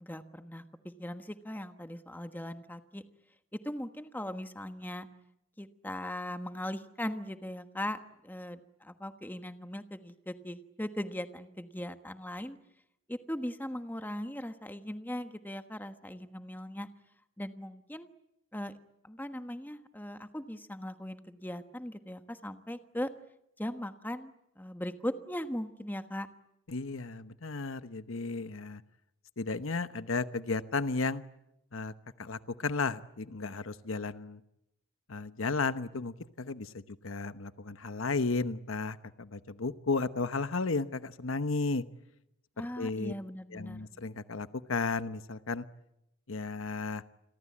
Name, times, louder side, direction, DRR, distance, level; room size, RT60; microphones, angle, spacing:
voice 1, 0.0-3.0 3.5-5.1 5.6-8.0 8.2-12.6 13.1-16.9 17.4-18.1 18.5-18.7 19.0-23.1 23.6-26.3 42.6-43.9, left 1 dB, 10° left, 8 dB, 1.3 m, -39 dB
voice 2, 26.7-28.8 29.4-31.2 31.7-31.9 32.2-34.4 35.1-41.8 42.6-43.1 43.5-45.6 46.3-47.0, left 3 dB, 70° left, 12 dB, 1.0 m, -34 dB
29.0 x 22.5 x 8.6 m, 0.83 s
head